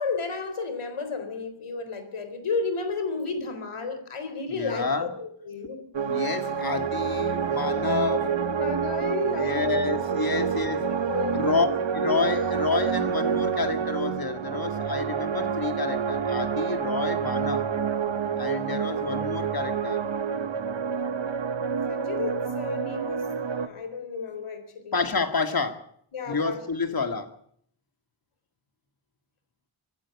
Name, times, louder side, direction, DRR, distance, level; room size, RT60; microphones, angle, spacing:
voice 1, 0.0-5.9 8.0-9.7 10.3-10.5 10.8-11.7 12.0-12.4 18.5-19.2 21.9-25.0 26.1-26.6, left 4 dB, 85° left, 3.9 m, -33 dB
voice 2, 4.5-5.1 6.1-8.3 9.3-10.8 11.3-11.7 11.9-17.7 18.4-20.1 24.9-25.9 26.3-27.3, left 4 dB, 45° left, 2.1 m, -29 dB
sound 1, 5.9-23.7, right 7 dB, 65° right, 1.4 m, -28 dB
25.5 x 12.5 x 8.5 m
wide cardioid pair, 80°, 49 cm